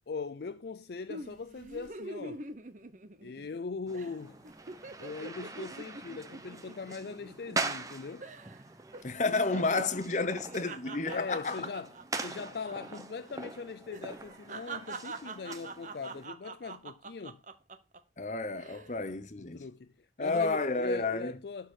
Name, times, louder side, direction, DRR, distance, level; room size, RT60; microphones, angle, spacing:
voice 1, 0.1-2.5 3.2-4.4 5.0-8.3 11.1-17.4 19.4-21.7, left 4 dB, 60° left, 0.4 m, -41 dB
sound 1, 1.1-3.6 3.9-4.1 4.4-7.9 8.2-8.6 8.9-13.0 13.3-13.4 13.9-18.0 18.5-18.9, right 3 dB, 45° right, 1.0 m, -45 dB
sound 2, 3.9-16.3, right 3 dB, 20° right, 0.9 m, -42 dB
voice 2, 9.0-11.6 18.2-19.6 20.2-21.4, left 3 dB, 40° left, 0.9 m, -31 dB
12.0 x 4.5 x 6.3 m
head